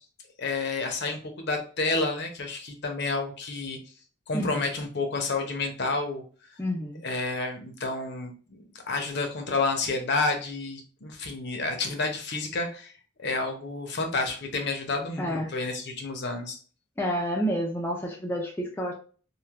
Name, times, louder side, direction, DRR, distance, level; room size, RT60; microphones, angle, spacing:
voice 1, 0.4-3.8 4.3-6.2 7.0-12.9 13.2-16.6, left 3 dB, 55° left, 5 dB, 0.7 m, -30 dB
voice 2, 4.3-4.6 6.6-7.0 15.2-15.5 17.0-18.9, equal, 10° left, 0 dB, 0.3 m, -29 dB
3.2 x 2.6 x 2.4 m, 0.40 s
head